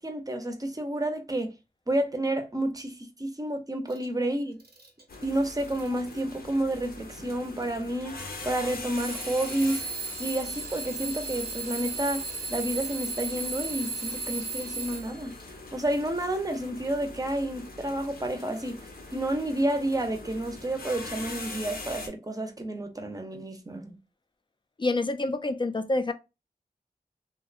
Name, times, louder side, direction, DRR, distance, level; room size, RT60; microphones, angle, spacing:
voice 1, 0.0-1.5 1.9-4.6 5.2-9.8 10.2-15.3 15.7-18.8 19.1-24.0, right 1 dB, 20° right, 0.6 m, -30 dB
Alarm / Clock, 3.9-4.1 4.6-5.0 5.6-6.0 6.9-7.0 8.9-15.3, right 3 dB, 80° right, 0.7 m, -35 dB
sound 1, 5.1-22.1, left 2 dB, 70° left, 0.6 m, -43 dB
voice 2, 24.8-26.1, left 2 dB, 30° left, 0.4 m, -27 dB
2.7 x 2.1 x 2.4 m
wide cardioid pair, 60°, 16 cm